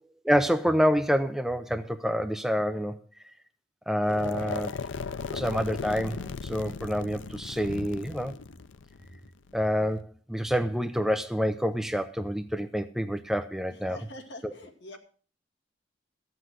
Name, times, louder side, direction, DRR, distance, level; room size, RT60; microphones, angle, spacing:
voice 1, 0.2-3.0 3.9-4.7 5.3-8.3 9.5-14.0, equal, ahead, 0.5 m, -27 dB
sound 1, 4.0-10.0, left 5 dB, 80° left, 0.6 m, -37 dB
voice 2, 13.7-15.0, left 1 dB, 65° left, 2.3 m, -44 dB
13.5 x 7.9 x 6.2 m
head